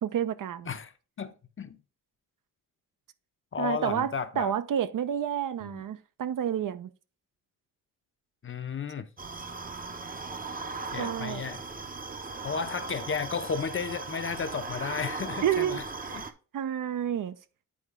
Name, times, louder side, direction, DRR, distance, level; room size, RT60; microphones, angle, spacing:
voice 1, 0.0-0.7 3.6-6.9 11.0-11.4 15.4-15.8 16.1-17.4, right 9 dB, 65° right, 0.6 m, -30 dB
voice 2, 1.2-1.8 3.5-4.5 5.6-5.8 8.4-9.1 10.9-11.6 12.4-15.8 16.1-16.2, left 6 dB, 35° left, 0.6 m, -33 dB
sound 1, 9.2-16.3, right 3 dB, 25° right, 0.7 m, -38 dB
8.5 x 4.5 x 3.6 m
cardioid pair, 100°, 35 cm